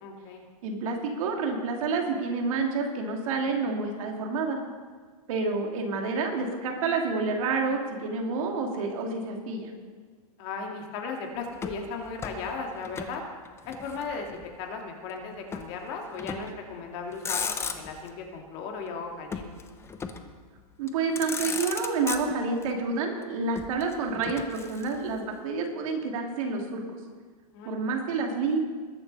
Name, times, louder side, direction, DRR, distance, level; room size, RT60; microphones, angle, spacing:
voice 1, 0.0-0.4 10.4-13.2 13.6-14.3 14.6-19.5 27.5-27.9, left 4 dB, 45° left, 2 dB, 2.4 m, -36 dB
voice 2, 0.6-4.6 5.3-9.7 20.8-27.0 27.6-28.6, right 4 dB, 60° right, 2 dB, 2.7 m, -29 dB
Motor vehicle (road), 11.6-13.2 13.5-14.5 15.5-15.7 16.2-16.6 17.1-18.1 19.3-20.4 20.9-21.0 21.2-22.7 23.5-25.2, left 5 dB, 15° left, 0.7 m, -36 dB
21.0 x 7.1 x 5.5 m, 1.5 s
hypercardioid pair, 140°, 19 cm